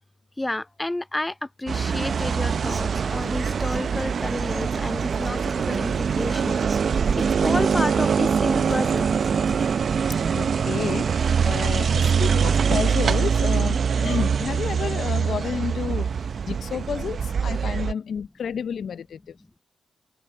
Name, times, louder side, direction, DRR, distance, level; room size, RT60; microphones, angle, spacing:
voice 1, 0.4-9.1, left 1 dB, 15° left, 0.6 m, -31 dB
Human voice / Acoustic guitar, 1.7-9.7, right 4 dB, 45° right, 1.1 m, -37 dB
sound 1, 1.7-17.9, right 6 dB, 65° right, 0.6 m, -23 dB
voice 2, 10.3-19.4, left 7 dB, 70° left, 0.4 m, -31 dB
supercardioid pair, 50°, 0 cm